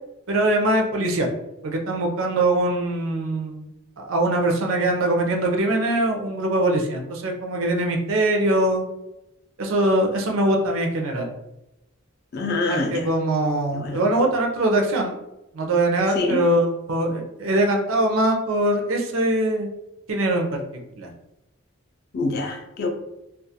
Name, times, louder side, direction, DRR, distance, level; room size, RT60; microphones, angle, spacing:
voice 1, 0.3-1.3 1.6-3.7 4.0-8.8 9.6-11.3 12.7-15.2 15.5-19.7 20.1-20.6 21.0-21.1, right 1 dB, 75° right, 0.5 m, -22 dB
voice 2, 12.3-13.1 13.7-14.0 16.2-16.4 22.1-22.9, left 2 dB, 45° left, 0.3 m, -25 dB
2.3 x 2.2 x 2.7 m
head